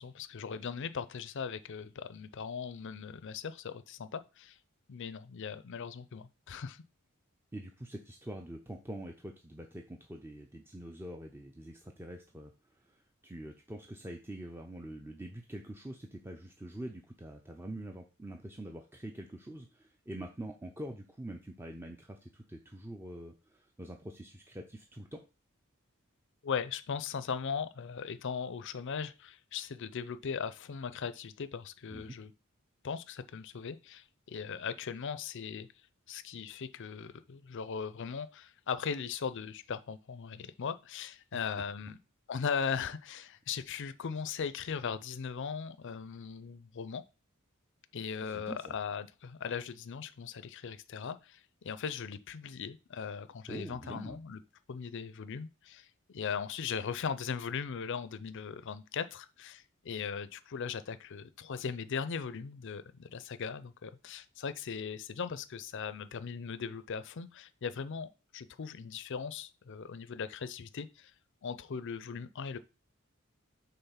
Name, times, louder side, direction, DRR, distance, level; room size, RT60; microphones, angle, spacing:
voice 1, 0.0-4.6 4.9-6.8 26.4-32.3 32.8-35.7 36.1-42.0 42.3-47.0 47.9-54.4 54.7-71.1 71.4-72.6, left 6 dB, 60° left, 0.5 m, -39 dB
voice 2, 7.5-25.2 31.9-32.2 41.6-41.7 48.2-48.8 53.5-54.2, right 1 dB, 10° right, 0.5 m, -45 dB
5.7 x 3.7 x 5.7 m
head